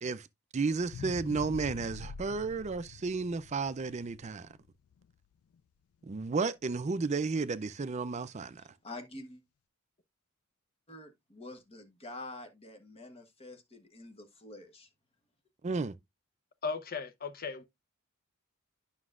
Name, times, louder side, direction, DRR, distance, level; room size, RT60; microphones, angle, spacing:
voice 1, 0.5-4.5 6.0-8.6 15.6-15.9, right 4 dB, 30° right, 0.4 m, -33 dB
sound 1, 0.8-5.0 5.5-5.6, left 6 dB, 75° left, 0.3 m, -45 dB
voice 2, 8.6-9.4 10.9-14.9, left 2 dB, 25° left, 1.1 m, -47 dB
voice 3, 16.6-17.6, left 5 dB, 45° left, 0.7 m, -36 dB
9.6 x 6.1 x 2.4 m
head